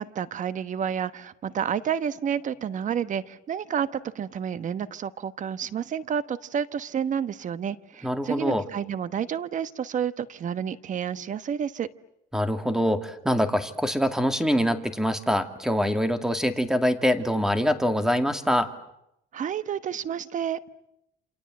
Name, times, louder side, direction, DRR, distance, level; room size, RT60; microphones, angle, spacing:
voice 1, 0.0-11.9 19.3-20.6, right 8 dB, 50° right, 13 dB, 1.2 m, -30 dB
voice 2, 8.0-8.6 12.3-18.7, equal, 5° right, 8 dB, 2.3 m, -24 dB
29.0 x 26.5 x 7.8 m, 0.81 s
cardioid pair, 110°, 17 cm